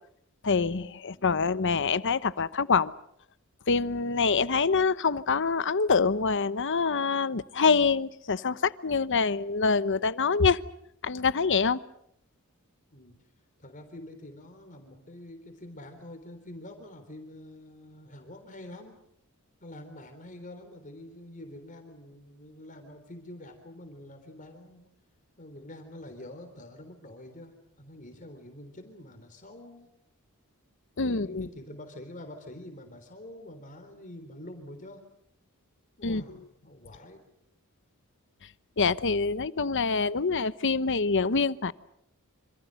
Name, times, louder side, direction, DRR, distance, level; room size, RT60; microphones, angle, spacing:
voice 1, 0.4-2.9 3.7-10.6 11.0-11.8 31.0-31.5 36.0-36.2 38.8-41.7, left 4 dB, 60° left, 0.9 m, -25 dB
voice 2, 1.1-1.4 12.9-13.2 13.6-19.0 19.6-24.9 25.4-29.9 31.0-35.0 36.0-36.4 36.6-37.2, left 1 dB, 35° left, 3.7 m, -46 dB
27.5 x 27.0 x 6.5 m
head